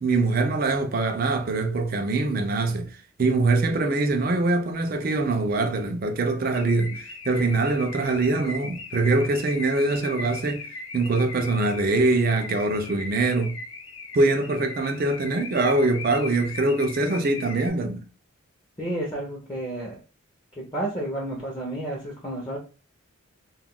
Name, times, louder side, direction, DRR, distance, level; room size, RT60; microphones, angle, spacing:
voice 1, 0.0-10.7 10.9-13.6 14.1-18.0, right 2 dB, 45° right, 0.4 m, -23 dB
Car / Alarm, 6.5-17.7, left 3 dB, 70° left, 0.6 m, -39 dB
voice 2, 18.8-20.0 20.6-22.6, right 1 dB, 20° left, 0.6 m, -31 dB
2.3 x 2.2 x 3.6 m
head